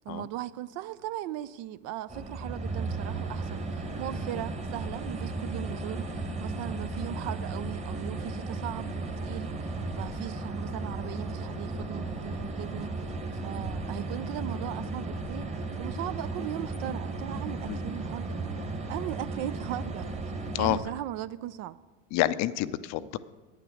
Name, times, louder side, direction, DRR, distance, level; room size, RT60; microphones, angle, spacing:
voice 1, 0.1-20.1 20.6-21.8, right 13 dB, 40° right, 0.4 m, -38 dB
sound 1, 2.1-20.8, right 3 dB, 15° right, 1.4 m, -35 dB
voice 2, 22.1-23.2, left 15 dB, 45° left, 0.5 m, -28 dB
9.3 x 9.2 x 6.4 m
hypercardioid pair, 100°, 40 cm